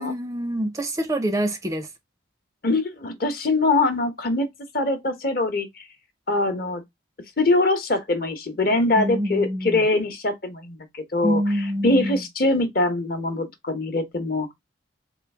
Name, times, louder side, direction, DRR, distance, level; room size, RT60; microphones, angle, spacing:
voice 1, 0.0-1.9 9.0-9.8 11.2-12.3, equal, 20° right, 0.4 m, -26 dB
voice 2, 2.6-4.5 4.7-5.9 6.3-6.8 7.4-11.4 11.8-14.5, left 2 dB, 50° left, 0.8 m, -23 dB
3.8 x 2.4 x 3.3 m
head